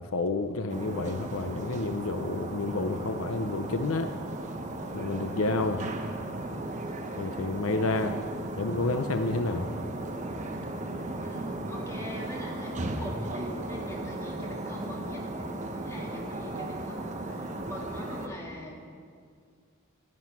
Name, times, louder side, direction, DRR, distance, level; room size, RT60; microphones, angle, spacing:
voice 1, 0.0-4.1 4.9-5.8 7.2-8.2 8.6-9.7, left 3 dB, 70° left, 7 dB, 0.7 m, -30 dB
sound 1, 0.7-18.3, right 1 dB, 35° right, 1.2 m, -36 dB
voice 2, 11.2-18.8, equal, 15° left, -3 dB, 2.9 m, -42 dB
16.5 x 11.5 x 6.0 m, 2.1 s
head